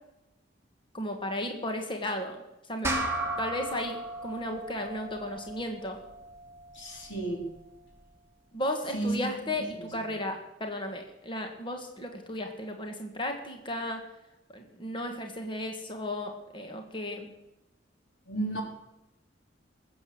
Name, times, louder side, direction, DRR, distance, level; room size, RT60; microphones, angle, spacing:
voice 1, 0.9-2.4 2.7-3.0 3.4-6.0 8.5-14.0 14.5-17.3, left 1 dB, 25° left, 4 dB, 1.7 m, -34 dB
sound 1, 2.8-7.6, right 2 dB, 15° right, 1.9 m, -36 dB
voice 2, 6.7-7.4 8.9-9.3 9.5-10.2 18.3-18.6, right 2 dB, 90° left, 0 dB, 4.3 m, -33 dB
20.0 x 8.0 x 7.8 m, 0.94 s
head